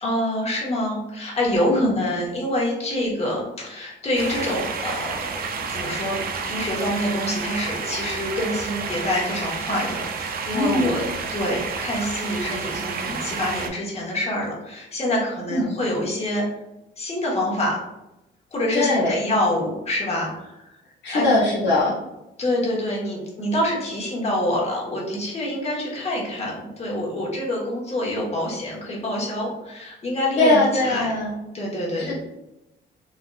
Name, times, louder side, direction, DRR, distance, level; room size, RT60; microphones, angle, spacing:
voice 1, 0.0-5.3 5.6-11.1 11.3-16.5 17.0-17.8 18.5-20.6 21.1-21.4 22.4-31.1 31.5-32.1, left 1 dB, 30° left, -4 dB, 1.1 m, -26 dB
sound 1, 4.2-13.7, right 5 dB, 50° right, 0.4 m, -30 dB
voice 2, 10.5-11.0 15.5-15.7 18.7-19.2 21.0-21.9 30.4-31.3 32.0-32.1, left 2 dB, 65° left, -6 dB, 0.9 m, -21 dB
3.4 x 2.3 x 2.3 m, 0.92 s
cardioid pair, 90°, 20 cm